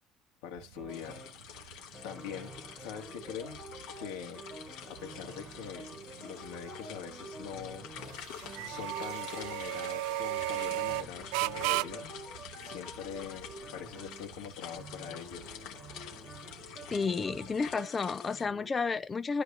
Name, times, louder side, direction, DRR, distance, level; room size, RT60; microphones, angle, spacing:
voice 1, 0.4-2.5 2.8-3.6 4.0-5.9 6.2-7.9 8.6-12.1 12.6-15.6, left 8 dB, 90° left, 2.5 m, -43 dB
sound 1, 0.6-17.8, right 19 dB, 85° right, 0.4 m, -39 dB
sound 2, 0.7-1.4 1.9-14.4 14.7-18.7, right 1 dB, 5° right, 4.0 m, -49 dB
sound 3, 0.9-18.5, left 9 dB, 65° left, 2.8 m, -48 dB
voice 2, 16.9-19.4, left 4 dB, 20° left, 0.4 m, -31 dB
13.5 x 4.9 x 2.9 m
cardioid pair, 165°, 0 cm